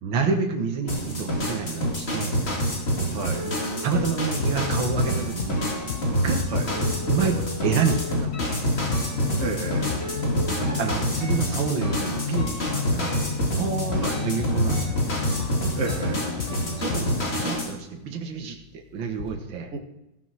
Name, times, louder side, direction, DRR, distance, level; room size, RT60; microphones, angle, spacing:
voice 1, 0.0-2.4 3.4-3.6 3.8-5.7 6.2-6.4 6.7-8.7 10.8-13.1 13.5-15.0 16.5-19.7, right 5 dB, 80° right, 3 dB, 2.0 m, -29 dB
sound 1, 0.9-17.7, equal, 30° left, 2.5 m, -27 dB
voice 2, 3.1-3.5 6.5-6.7 9.4-10.0 14.0-14.2 15.8-16.3 19.7-19.8, right 2 dB, 40° right, 4 dB, 1.7 m, -30 dB
sound 2, 3.3-17.6 17.8-19.3, left 2 dB, 65° left, 2.7 m, -41 dB
sound 3, 4.3-17.4, left 9 dB, 90° left, 0.6 m, -33 dB
16.0 x 6.8 x 6.2 m, 0.89 s
omnidirectional pair, 2.1 m